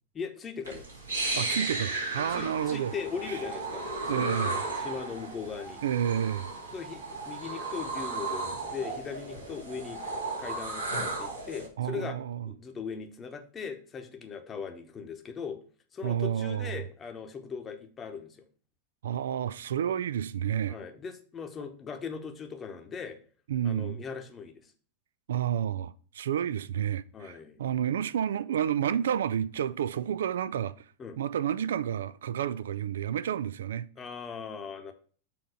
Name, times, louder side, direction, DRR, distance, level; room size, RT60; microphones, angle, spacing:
voice 1, 0.1-0.9 2.3-4.4 4.8-5.8 6.7-10.0 10.4-12.2 12.4-15.6 15.9-18.5 20.7-23.2 23.6-24.7 27.1-27.6 31.0-31.2 34.0-34.9, left 6 dB, 20° left, 1.0 m, -39 dB
sound 1, 0.6-11.7, right 2 dB, 80° right, 2.4 m, -35 dB
voice 2, 1.4-2.9 3.3-3.4 4.1-4.6 5.8-6.5 11.8-12.5 16.0-16.8 19.0-20.8 23.5-24.0 25.3-30.7 31.2-33.9, right 9 dB, 60° right, 0.4 m, -30 dB
6.9 x 3.8 x 5.1 m
figure-of-eight pair, 90°, 0 cm